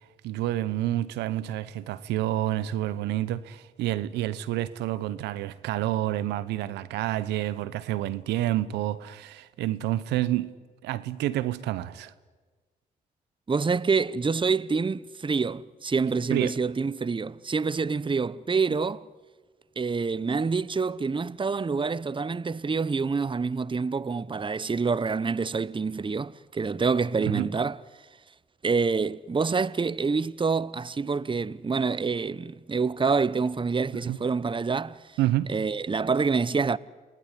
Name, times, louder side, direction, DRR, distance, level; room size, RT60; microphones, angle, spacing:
voice 1, 0.2-10.5 10.8-12.1 16.3-16.5 27.2-27.5 34.1-34.2 35.2-35.5, right 14 dB, 85° right, 0.9 m, -28 dB
voice 2, 13.5-19.0 19.8-27.8 28.6-35.0 35.5-36.8, right 4 dB, 30° right, 0.9 m, -27 dB
28.5 x 19.5 x 9.9 m
supercardioid pair, 50°, 17 cm